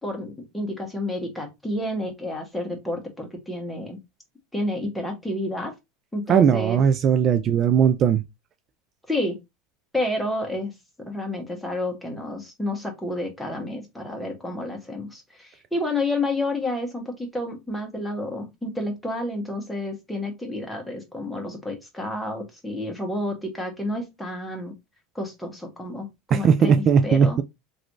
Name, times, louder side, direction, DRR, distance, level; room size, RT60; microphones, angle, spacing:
voice 1, 0.0-4.0 4.5-5.7 6.1-6.8 9.1-9.4 9.9-24.7 25.1-27.4, left 1 dB, 5° left, 1.3 m, -30 dB
voice 2, 6.3-8.2 26.3-27.4, right 7 dB, 40° right, 0.3 m, -18 dB
3.0 x 2.6 x 3.0 m
supercardioid pair, 105°, 0 cm